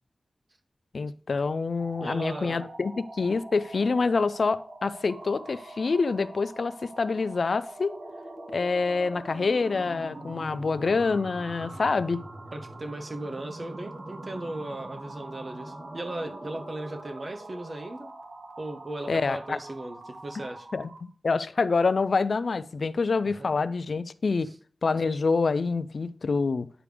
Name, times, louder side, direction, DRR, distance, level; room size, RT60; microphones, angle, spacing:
voice 1, 0.9-7.9 8.5-12.2 19.1-19.6 20.7-24.5 24.8-26.7, left 4 dB, 70° left, 0.4 m, -26 dB
sound 1, 1.7-21.1, right 2 dB, 60° right, 1.2 m, -43 dB
voice 2, 2.0-2.7 11.6-11.8 12.5-18.1 18.6-20.7 23.2-23.6, right 1 dB, 45° right, 0.9 m, -37 dB
9.9 x 4.8 x 3.4 m
wide cardioid pair, 90°, 0 cm